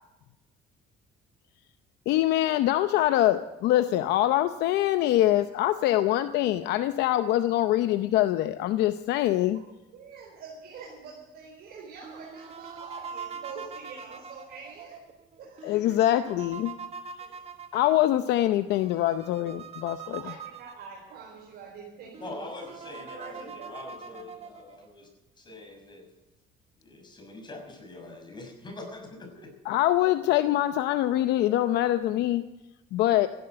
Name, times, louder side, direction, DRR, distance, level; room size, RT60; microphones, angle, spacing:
voice 1, 2.1-9.6 15.6-16.7 17.7-20.2 29.7-32.4 32.9-33.3, left 14 dB, 85° left, 10 dB, 0.7 m, -24 dB
voice 2, 9.9-15.1 15.4-16.0 17.2-17.5 20.0-24.2 30.5-30.6, right 5 dB, 70° right, -1 dB, 4.2 m, -46 dB
sound 1, 12.0-21.3 21.8-21.9 22.1-24.9, right 6 dB, 40° right, 1.5 m, -43 dB
voice 3, 22.2-25.1 25.4-26.1 26.8-29.5, left 2 dB, 25° left, 3 dB, 5.9 m, -43 dB
15.5 x 11.5 x 7.9 m, 1.0 s
cardioid pair, 110°, 17 cm